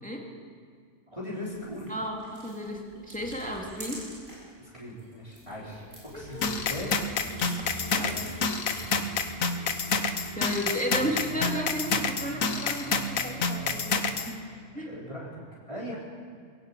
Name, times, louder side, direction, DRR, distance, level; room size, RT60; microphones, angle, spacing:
voice 1, 1.1-1.9 4.6-5.8 6.1-6.9 8.0-8.9 10.9-11.1 14.9-15.4 15.7-16.0, left 1 dB, 25° right, -7 dB, 4.4 m, -39 dB
sound 1, 1.4-4.5 4.9-9.1, equal, 85° right, 7.5 m, -47 dB
voice 2, 1.9-4.1 6.1-6.6 7.9-8.1 10.4-14.5 14.7-14.9, equal, 5° left, 0 dB, 2.6 m, -34 dB
sound 2, 6.4-14.3, left 4 dB, 85° left, 1.6 m, -28 dB
sound 3, 6.8-13.8, right 1 dB, 45° right, 7.7 m, -43 dB
22.5 x 16.0 x 8.6 m, 2.1 s
omnidirectional pair, 1.4 m